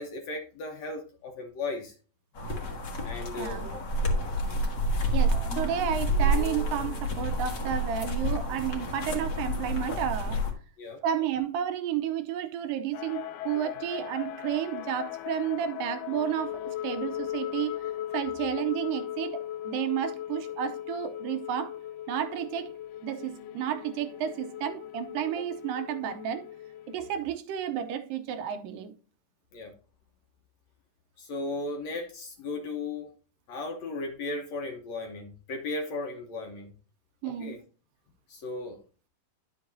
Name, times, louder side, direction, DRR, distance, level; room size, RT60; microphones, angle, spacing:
voice 1, 0.0-1.9 3.0-3.6 10.8-11.0 29.5-29.7 31.2-33.1 33.5-36.7 37.3-37.6 38.3-38.8, left 2 dB, 65° left, 1.9 m, -36 dB
sound 1, 2.3-10.5, equal, 50° left, 1.4 m, -29 dB
voice 2, 3.4-3.7 5.1-10.4 11.0-17.8 18.1-21.8 22.1-22.7 23.0-26.5 26.9-28.9 37.2-37.6, right 10 dB, 80° right, 2.3 m, -31 dB
sound 2, 5.3-7.3, right 1 dB, 50° right, 1.1 m, -44 dB
sound 3, 12.9-27.2, left 12 dB, 85° left, 2.4 m, -38 dB
11.0 x 6.6 x 2.7 m
omnidirectional pair, 4.1 m